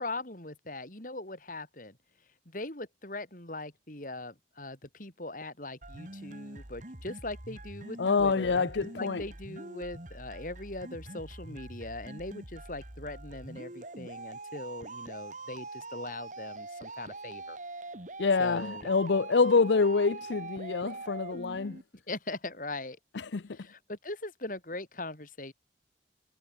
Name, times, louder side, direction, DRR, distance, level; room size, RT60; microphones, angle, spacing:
voice 1, 0.0-2.0 2.5-17.6 18.4-18.9 22.1-23.0 23.5-25.5, left 2 dB, 50° left, 4.6 m, -40 dB
sound 1, 5.8-21.8, right 2 dB, 45° right, 3.1 m, -44 dB
voice 2, 8.0-9.2 18.2-21.8 23.1-23.4, left 4 dB, 85° left, 0.6 m, -26 dB
head